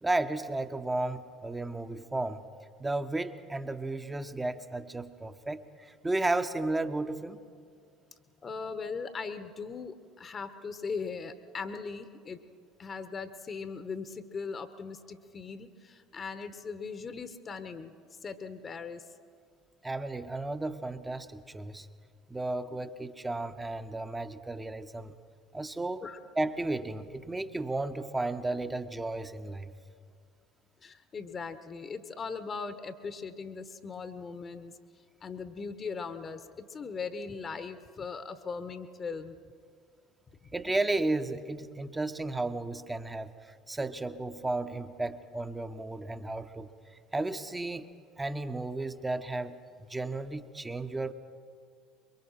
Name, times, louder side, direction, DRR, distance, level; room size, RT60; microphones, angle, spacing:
voice 1, 0.0-2.5 2.8-7.4 19.8-21.9 22.3-25.1 25.5-26.0 26.4-29.7 40.5-46.7 47.1-47.9 48.2-49.6 49.9-51.1, right 2 dB, 15° right, 9 dB, 1.1 m, -33 dB
voice 2, 8.4-12.4 12.8-17.9 18.2-19.1 26.0-26.2 30.8-34.8 35.2-39.4 40.4-40.5, left 5 dB, 30° left, 11 dB, 1.2 m, -39 dB
23.5 x 23.0 x 5.8 m, 2.2 s
figure-of-eight pair, 65°, 0 cm